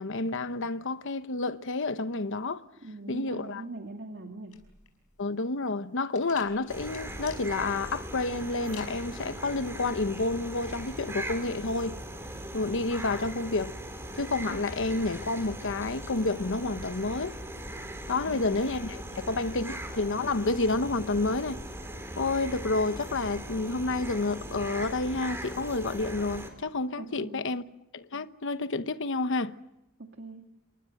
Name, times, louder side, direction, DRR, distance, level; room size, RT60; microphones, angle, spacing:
voice 1, 0.0-2.6 3.1-3.6 5.2-12.0 12.5-13.8 14.2-17.4 18.1-21.6 22.2-27.6 27.9-29.5, left 3 dB, 60° left, 1.0 m, -30 dB
voice 2, 2.8-4.5 18.1-18.6 27.0-27.4 30.0-30.5, right 2 dB, 50° right, 2.4 m, -42 dB
sound 1, 4.5-12.1, left 8 dB, 85° left, 5.4 m, -52 dB
sound 2, 6.7-26.5, right 1 dB, 10° right, 3.8 m, -40 dB
28.5 x 23.5 x 7.8 m
head